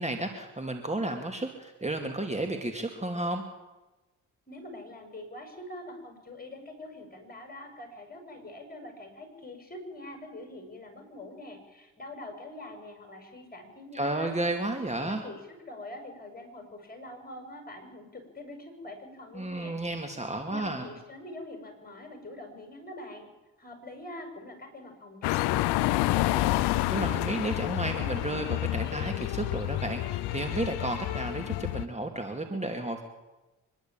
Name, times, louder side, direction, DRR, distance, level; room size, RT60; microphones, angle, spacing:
voice 1, 0.0-3.4 13.9-15.3 19.3-20.9 26.9-33.0, right 2 dB, 15° right, 5 dB, 2.7 m, -32 dB
voice 2, 4.5-14.3 15.0-19.8 20.5-23.3 23.6-26.7, left 1 dB, 25° left, 4 dB, 7.5 m, -44 dB
sound 1, 25.2-31.9, left 16 dB, 80° left, 0.7 m, -29 dB
25.0 x 11.5 x 9.0 m, 1.1 s
supercardioid pair, 55°, 39 cm